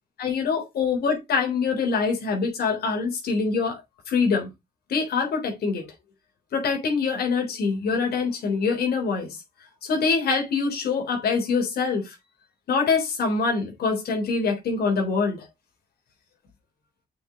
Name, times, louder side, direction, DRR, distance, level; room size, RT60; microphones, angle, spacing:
voice 1, 0.2-3.8 4.1-4.5 4.9-5.8 6.5-9.4 9.8-12.2 12.7-15.5, left 5 dB, 75° left, 3.8 m, -24 dB
7.1 x 6.3 x 4.1 m
supercardioid pair, 60°, 16 cm